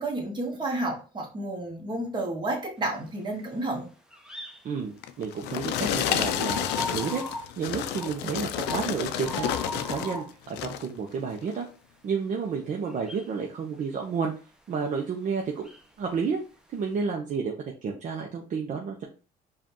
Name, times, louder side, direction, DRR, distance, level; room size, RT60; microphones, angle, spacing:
voice 1, 0.0-3.9, right 2 dB, 25° right, 1 dB, 1.3 m, -31 dB
sound 1, 4.1-4.7 6.2-7.5 8.0-8.2 8.6-10.3 12.8-13.3 15.5-16.1, left 1 dB, 5° right, 0.6 m, -38 dB
voice 2, 4.6-7.2 7.6-9.5 9.7-11.7 12.0-14.3 14.7-15.7 16.0-16.4 16.7-17.5 17.8-19.0, right 5 dB, 50° right, 1 dB, 0.7 m, -31 dB
sound 2, 5.0-10.2 10.5-10.9 11.5-11.6, left 10 dB, 85° left, 0.4 m, -30 dB
4.9 x 2.4 x 2.9 m, 0.35 s
cardioid pair, 110°, 17 cm